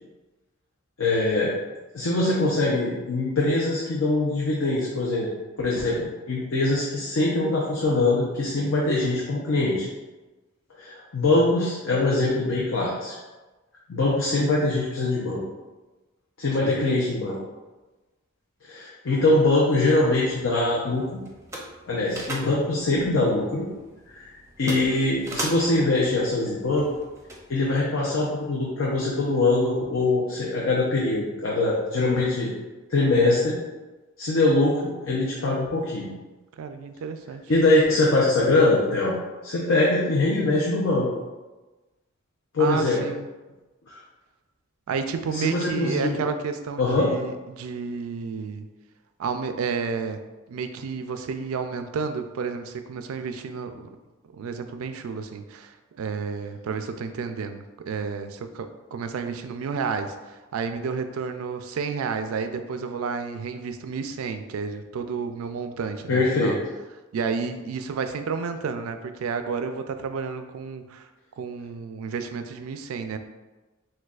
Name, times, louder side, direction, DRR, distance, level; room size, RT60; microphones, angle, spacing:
voice 1, 1.0-1.5 1.9-5.3 5.6-9.9 10.8-13.1 13.9-15.4 16.4-17.4 18.6-21.1 21.9-23.7 24.1-24.3 24.6-26.9 27.5-32.5 32.9-33.6 34.2-36.1 37.5-39.1 39.4-41.1 42.5-43.0 43.9-44.0 45.3-46.2 46.8-47.1 66.1-66.6, left 2 dB, 70° left, -5 dB, 0.6 m, -23 dB
sound 1, 19.8-27.8, right 1 dB, 15° right, 0.5 m, -39 dB
voice 2, 36.6-37.4 42.6-43.3 44.9-48.7 49.2-50.2 50.5-53.9 54.3-66.6 67.1-71.1 71.4-73.2, right 5 dB, 90° right, 8 dB, 0.4 m, -31 dB
6.3 x 2.3 x 2.4 m, 1.2 s
head